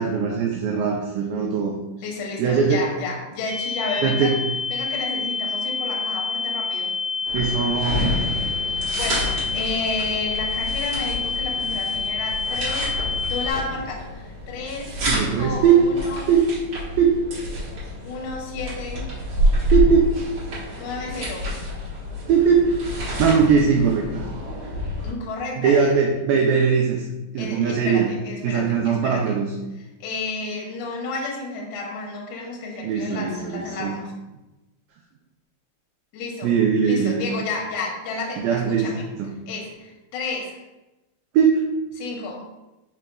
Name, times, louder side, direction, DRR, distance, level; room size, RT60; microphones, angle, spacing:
voice 1, 0.0-1.7 2.4-2.8 4.0-4.4 7.3-8.3 15.1-15.9 16.3-16.5 17.0-17.2 19.7-20.1 22.3-22.7 23.2-24.3 25.6-27.1 27.3-28.1 28.4-29.5 32.8-34.0 36.4-37.2 38.4-38.9 39.2-39.3 41.3-41.6, right 6 dB, 90° right, 0 dB, 2.0 m, -20 dB
voice 2, 2.0-4.3 4.7-6.9 8.7-16.3 18.0-19.1 20.8-21.5 25.0-25.9 27.4-29.4 30.0-34.1 36.1-39.1 39.5-40.6 41.9-42.4, left 3 dB, 75° left, -1 dB, 1.9 m, -32 dB
sound 1, 3.5-13.5, left 4 dB, 55° left, 1.6 m, -27 dB
sound 2, 7.3-25.1, left 1 dB, 60° right, 1.5 m, -28 dB
4.9 x 4.6 x 2.2 m, 1.0 s
omnidirectional pair, 4.6 m